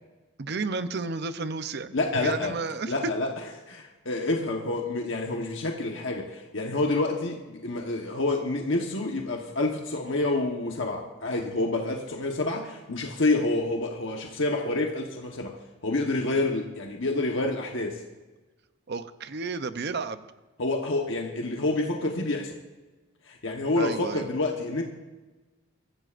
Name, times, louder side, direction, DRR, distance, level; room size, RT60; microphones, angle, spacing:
voice 1, 0.4-2.0 2.2-2.9 18.9-20.2 23.8-24.3, right 4 dB, 55° right, 11 dB, 0.7 m, -32 dB
voice 2, 1.9-2.6 2.9-3.3 3.7-15.6 15.8-18.0 20.6-22.6 23.3-24.8, left 2 dB, 60° left, 1 dB, 1.2 m, -28 dB
23.5 x 14.5 x 2.6 m, 1.2 s
head